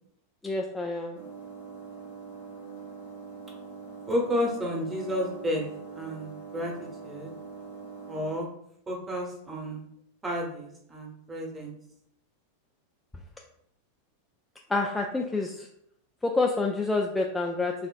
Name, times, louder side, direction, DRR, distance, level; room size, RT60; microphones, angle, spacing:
voice 1, 0.4-1.2 14.7-15.7 16.2-17.7, left 3 dB, 10° left, 0 dB, 0.3 m, -27 dB
sound 1, 1.1-8.4, right 5 dB, 80° left, 1.1 m, -43 dB
voice 2, 4.1-5.6 5.9-6.7 7.0-7.3 8.1-8.5 8.9-9.8 10.2-11.7, equal, 15° right, -1 dB, 1.0 m, -31 dB
4.4 x 2.5 x 2.4 m, 0.72 s
figure-of-eight pair, 90°, 0 cm